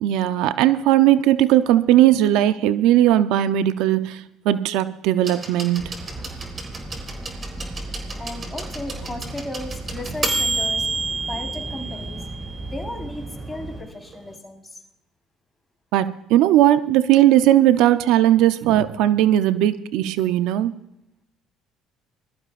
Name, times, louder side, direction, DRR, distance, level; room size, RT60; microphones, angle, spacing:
voice 1, 0.0-5.9 15.9-20.7, right 13 dB, 75° right, 12 dB, 0.6 m, -18 dB
sound 1, 5.2-13.0 14.1-14.2, right 3 dB, 30° right, 3.8 m, -30 dB
sound 2, 5.8-13.8, right 1 dB, 10° right, 4.6 m, -36 dB
voice 2, 7.8-10.9 11.3-12.2 12.6-14.8, left 1 dB, 15° left, 2 dB, 4.3 m, -35 dB
22.5 x 13.5 x 2.5 m, 0.81 s
supercardioid pair, 85°, 0 cm